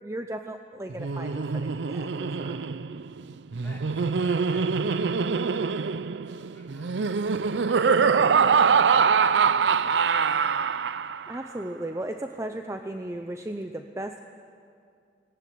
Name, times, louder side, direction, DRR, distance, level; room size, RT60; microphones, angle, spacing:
voice 1, 0.0-2.7 8.2-8.6 11.3-14.2, right 1 dB, 15° right, 6 dB, 0.6 m, -36 dB
Laughter, 0.9-11.4, right 5 dB, 90° right, 0.5 m, -24 dB
voice 2, 3.6-9.5 9.7-10.8, left 1 dB, 10° left, -5 dB, 4.5 m, -53 dB
18.5 x 18.0 x 9.4 m, 2.3 s
head